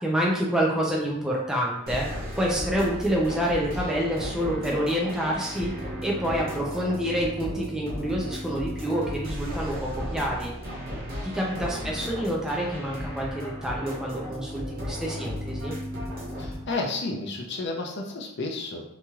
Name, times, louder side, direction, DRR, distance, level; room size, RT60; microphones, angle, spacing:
voice 1, 0.0-5.7 6.0-10.5 11.2-15.8, equal, 5° right, -3 dB, 0.4 m, -27 dB
sound 1, 1.9-16.6, equal, 40° right, 1.1 m, -35 dB
voice 2, 11.5-12.1 16.3-18.8, left 3 dB, 50° left, 1 dB, 0.5 m, -32 dB
3.0 x 2.8 x 2.3 m, 0.84 s
head